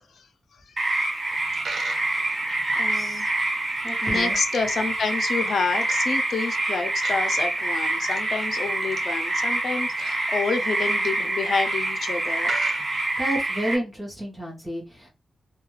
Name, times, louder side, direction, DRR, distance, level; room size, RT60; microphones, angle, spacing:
sound 1, 0.8-13.8, right 2 dB, 40° right, 1.0 m, -26 dB
Coin (dropping), 1.3-13.6, right 4 dB, 65° right, 0.6 m, -44 dB
voice 1, 2.8-3.3 4.0-12.6, left 4 dB, 60° left, 0.4 m, -28 dB
voice 2, 3.8-4.4 13.2-15.1, right 1 dB, 10° right, 0.8 m, -31 dB
2.3 x 2.2 x 3.0 m
wide cardioid pair, 145°, 0 cm